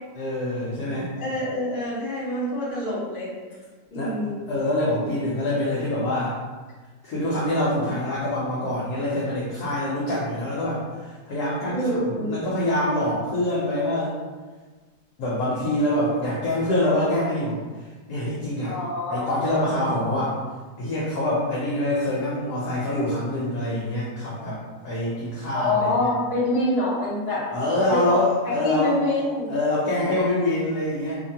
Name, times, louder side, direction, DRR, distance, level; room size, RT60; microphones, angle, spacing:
voice 1, 0.1-1.1 3.9-4.1 4.5-6.4 7.0-11.9 12.2-14.2 15.2-17.6 18.1-18.7 19.1-20.4 20.8-24.6 24.8-26.1 27.5-28.9 29.5-31.2, left 1 dB, 70° left, -7 dB, 1.1 m, -25 dB
voice 2, 1.2-3.3 3.9-4.4 11.7-12.3 18.6-19.8 25.5-27.5 27.9-29.5, left 1 dB, 35° left, -9 dB, 1.3 m, -26 dB
2.9 x 2.2 x 2.7 m, 1.3 s
omnidirectional pair, 1.9 m